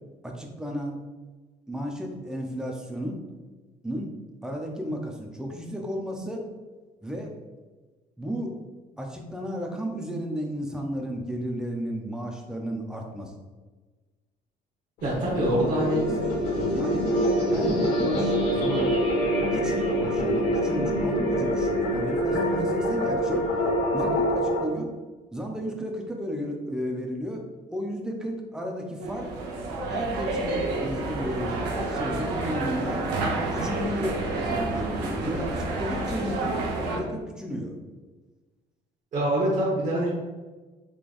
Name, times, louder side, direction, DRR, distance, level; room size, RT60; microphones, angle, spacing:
voice 1, 0.2-1.0 1.7-3.2 3.8-4.1 4.4-6.4 7.0-7.3 8.2-8.5 9.0-13.3 16.2-16.3 16.7-17.1 17.5-19.0 19.5-23.4 23.9-24.9 25.3-27.4 27.7-29.3 29.9-31.6 31.9-33.1 33.5-37.7, equal, 5° right, 1 dB, 0.6 m, -33 dB
sound 1, 15.0-24.6, equal, 75° left, 1.2 m, -25 dB
voice 2, 15.0-16.0 16.4-16.6 39.1-40.1, right 1 dB, 50° right, -7 dB, 1.1 m, -25 dB
sound 2, 29.0-37.0, right 2 dB, 85° right, 0.9 m, -29 dB
3.8 x 3.2 x 2.5 m, 1.3 s
cardioid pair, 110°, 17 cm